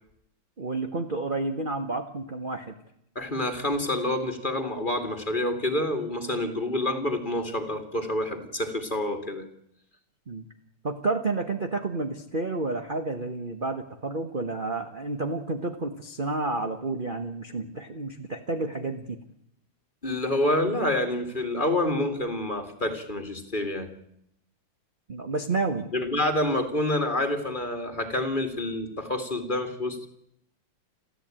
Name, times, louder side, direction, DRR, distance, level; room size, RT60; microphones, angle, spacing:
voice 1, 0.6-2.7 10.3-10.5 10.8-19.2 25.1-25.9, right 3 dB, 30° right, 6 dB, 1.2 m, -30 dB
voice 2, 3.2-9.5 20.0-23.9 25.9-30.1, left 1 dB, 20° left, 6 dB, 2.4 m, -28 dB
28.5 x 14.5 x 9.1 m, 0.77 s
omnidirectional pair, 2.4 m